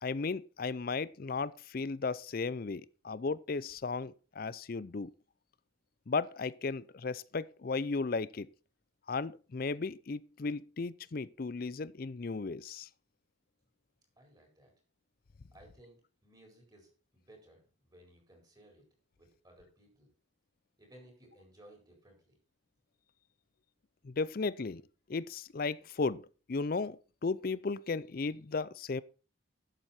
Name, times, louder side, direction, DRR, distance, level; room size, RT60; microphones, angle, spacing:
voice 1, 0.0-5.1 6.1-8.5 9.1-12.9 24.0-24.8 25.1-29.0, left 4 dB, 45° left, 0.5 m, -35 dB
voice 2, 14.2-14.7 15.5-18.9 19.2-20.1 20.8-22.4, right 1 dB, 20° right, 4.4 m, -59 dB
12.0 x 8.0 x 4.3 m
head